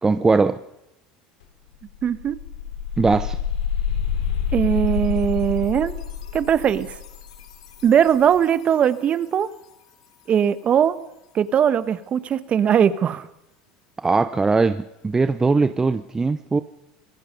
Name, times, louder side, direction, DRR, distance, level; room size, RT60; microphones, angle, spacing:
voice 1, 0.0-0.6 3.0-3.4 14.0-16.6, right 4 dB, 15° right, 0.8 m, -20 dB
sound 1, 1.4-1.5 1.8-8.6, left 8 dB, 85° left, 3.2 m, -28 dB
voice 2, 2.0-2.4 4.5-6.0 6.3-6.9 7.8-9.5 10.3-11.0 11.3-13.3, right 9 dB, 40° right, 1.3 m, -20 dB
25.5 x 19.5 x 5.4 m
hypercardioid pair, 95°, 3 cm